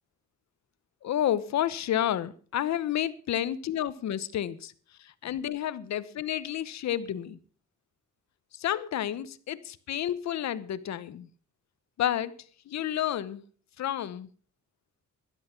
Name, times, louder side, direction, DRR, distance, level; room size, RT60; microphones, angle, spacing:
voice 1, 1.0-4.7 5.2-7.4 8.5-11.3 12.0-12.4 12.7-13.4 13.8-14.3, left 11 dB, 65° left, 1.1 m, -30 dB
12.5 x 11.0 x 5.9 m
cardioid pair, 90°, 30 cm